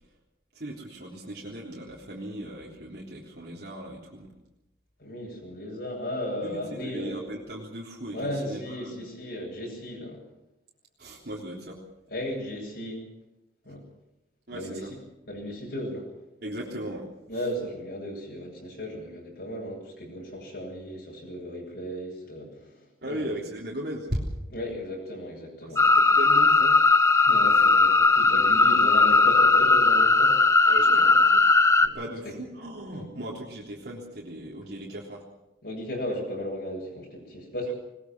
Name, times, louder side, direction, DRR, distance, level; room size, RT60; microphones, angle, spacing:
voice 1, 0.5-4.3 6.4-9.1 11.0-11.8 14.5-14.9 16.4-17.4 23.0-24.3 25.7-26.8 27.5-27.7 30.6-31.5 31.9-35.3, right 1 dB, 60° right, -3 dB, 3.6 m, -37 dB
voice 2, 5.0-7.2 8.1-10.2 12.1-13.1 13.6-13.8 14.5-14.8 15.3-16.1 17.3-23.4 24.5-26.0 27.2-30.4 31.8-32.0 32.9-33.1 35.6-37.7, equal, 60° left, -2 dB, 7.8 m, -35 dB
sound 1, 25.8-31.9, left 3 dB, 15° left, 1.1 m, -18 dB
21.0 x 20.5 x 6.1 m, 0.93 s
head